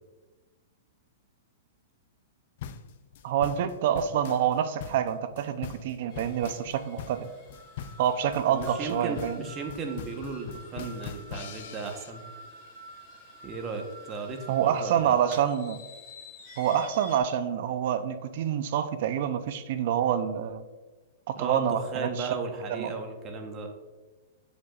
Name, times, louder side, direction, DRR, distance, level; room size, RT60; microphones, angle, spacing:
sound 1, 2.6-12.1, left 8 dB, 55° left, 0.4 m, -42 dB
voice 1, 3.2-7.3 8.0-9.5 14.5-15.8 16.6-20.6 21.3-22.3 22.7-22.9, right 9 dB, 55° right, 11 dB, 0.5 m, -27 dB
sound 2, 6.1-17.2, left 1 dB, 25° left, 1.6 m, -49 dB
voice 2, 8.5-12.2 13.4-15.2 21.4-23.7, right 4 dB, 25° right, 4 dB, 1.0 m, -35 dB
9.6 x 5.1 x 2.4 m, 1.2 s
hypercardioid pair, 145°, 0 cm